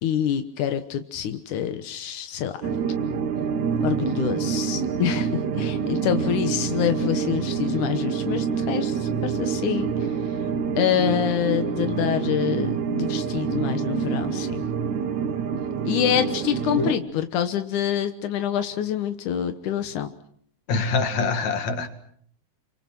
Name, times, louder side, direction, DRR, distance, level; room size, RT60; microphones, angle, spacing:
voice 1, 0.0-2.8 3.8-10.4 10.8-14.7 15.8-20.1, left 10 dB, 90° left, 8 dB, 2.7 m, -26 dB
sound 1, 2.6-16.9, right 6 dB, 75° right, 2.8 m, -26 dB
voice 2, 20.7-21.9, left 4 dB, 65° left, 8 dB, 3.3 m, -24 dB
28.0 x 26.0 x 6.1 m, 0.64 s
omnidirectional pair, 3.4 m